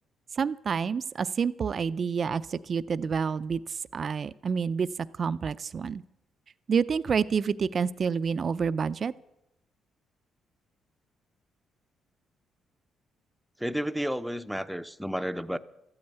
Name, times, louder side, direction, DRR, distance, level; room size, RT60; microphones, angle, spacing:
voice 1, 0.3-4.9 5.2-6.0 6.7-9.1, right 6 dB, 45° right, 15 dB, 0.5 m, -28 dB
voice 2, 13.6-15.6, equal, ahead, 11 dB, 0.7 m, -31 dB
13.0 x 8.7 x 9.0 m, 0.86 s
cardioid pair, 90°, 0 cm